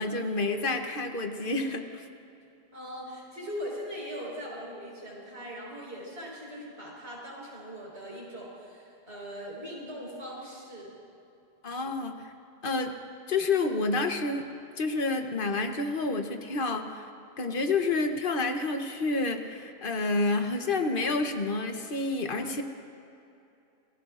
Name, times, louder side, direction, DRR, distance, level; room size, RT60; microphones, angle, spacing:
voice 1, 0.0-2.1 11.6-12.3 12.6-12.9 13.3-14.5 14.8-17.0 17.4-22.6, left 3 dB, 60° left, 5 dB, 1.1 m, -29 dB
voice 2, 2.7-11.0, equal, 90° right, -5 dB, 4.9 m, -40 dB
26.5 x 18.5 x 2.5 m, 2.7 s
omnidirectional pair, 1.0 m